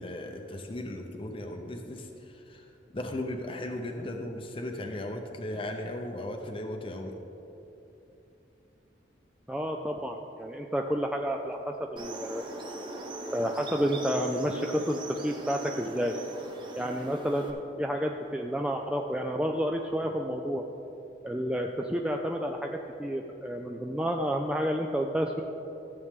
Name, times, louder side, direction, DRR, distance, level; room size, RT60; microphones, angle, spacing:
voice 1, 0.0-7.2 20.0-20.1, left 1 dB, 30° left, 3 dB, 0.7 m, -37 dB
voice 2, 9.5-12.4 13.3-16.2 16.8-20.6 21.2-22.7 23.0-25.4, equal, 5° right, 1 dB, 0.3 m, -30 dB
sound 1, 12.0-17.5, right 1 dB, 25° right, 0.9 m, -39 dB
14.5 x 7.9 x 3.7 m, 2.9 s
head